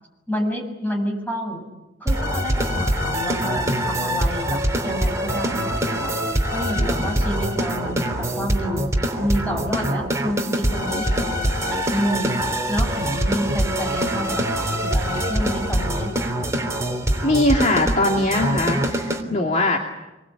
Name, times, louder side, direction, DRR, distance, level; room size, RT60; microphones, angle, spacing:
voice 1, 0.3-1.6 2.0-6.1 6.5-8.9 9.2-12.3 12.7-14.5 14.8-16.1, equal, 10° left, 1 dB, 7.5 m, -29 dB
sound 1, 2.1-19.2, right 1 dB, 15° right, 3.2 m, -24 dB
voice 2, 17.2-19.8, left 2 dB, 40° left, 1 dB, 2.5 m, -21 dB
26.5 x 23.0 x 9.0 m, 1.0 s
head